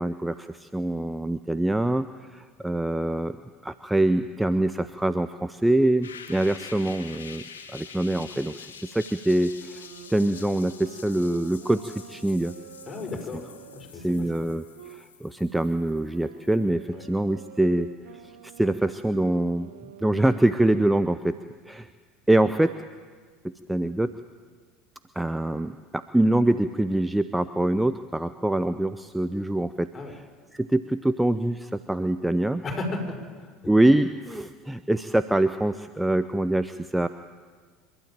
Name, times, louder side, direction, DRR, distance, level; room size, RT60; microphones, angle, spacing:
voice 1, 0.0-3.4 3.6-7.4 7.7-8.7 8.9-12.5 13.9-14.6 14.9-17.9 18.6-19.7 20.0-21.4 21.7-21.9 22.3-22.7 23.4-24.1 25.2-29.9 30.5-32.6 33.7-37.1, right 1 dB, 5° right, 11 dB, 0.7 m, -24 dB
sound 1, 6.0-16.7, left 6 dB, 85° left, 1.8 m, -46 dB
Wind instrument woodwind instrument, 9.2-15.0 15.8-21.2, right 10 dB, 70° right, 1.9 m, -48 dB
voice 2, 12.9-13.5 13.7-14.1 16.9-17.0 29.9-30.1 32.6-33.5, left 2 dB, 30° left, 2 dB, 6.2 m, -34 dB
26.0 x 12.0 x 9.0 m, 1.5 s
hypercardioid pair, 75°, 0 cm